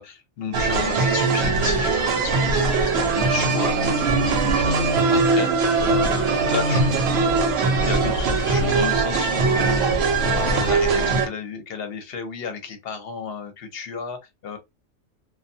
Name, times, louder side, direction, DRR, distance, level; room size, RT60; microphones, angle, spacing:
voice 1, 0.0-7.2 7.7-9.8 10.2-14.6, left 5 dB, 55° left, 0.8 m, -33 dB
sound 1, 0.5-11.3, right 3 dB, 65° right, 0.9 m, -21 dB
2.3 x 2.2 x 2.6 m
omnidirectional pair, 1.3 m